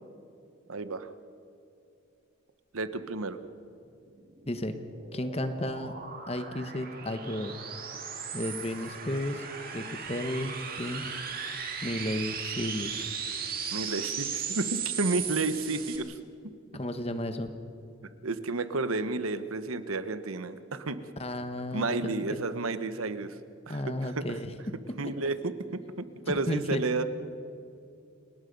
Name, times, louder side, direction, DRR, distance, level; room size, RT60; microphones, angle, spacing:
voice 1, 0.7-1.1 2.7-3.4 13.7-16.2 18.2-21.0 21.7-23.4 23.7-24.4 25.0-27.0, right 3 dB, 85° right, 12 dB, 1.1 m, -31 dB
sound 1, 4.1-16.0, right 7 dB, 45° right, 2.3 m, -37 dB
voice 2, 5.1-5.9 6.3-7.6 8.3-9.5 9.7-11.0 11.8-13.0 16.7-17.5 21.2-22.2 23.7-24.5 26.3-26.8, left 1 dB, 30° left, 9 dB, 1.2 m, -33 dB
29.5 x 18.5 x 5.4 m, 2.7 s
head